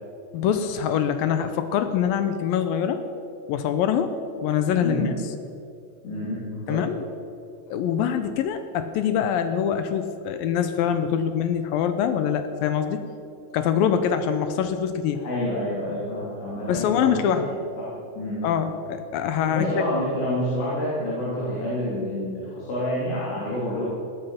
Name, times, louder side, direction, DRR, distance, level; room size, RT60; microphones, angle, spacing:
voice 1, 0.3-3.0 3.5-5.0 6.7-7.0 7.7-13.0 13.5-15.2 16.7-17.5 18.4-19.8, left 8 dB, 85° left, 9 dB, 2.0 m, -24 dB
voice 2, 4.8-5.1 6.0-6.8 15.2-17.5 17.8-18.5 19.5-23.9, left 1 dB, 70° left, -8 dB, 5.5 m, -28 dB
17.0 x 13.0 x 5.8 m, 2.7 s
omnidirectional pair, 5.2 m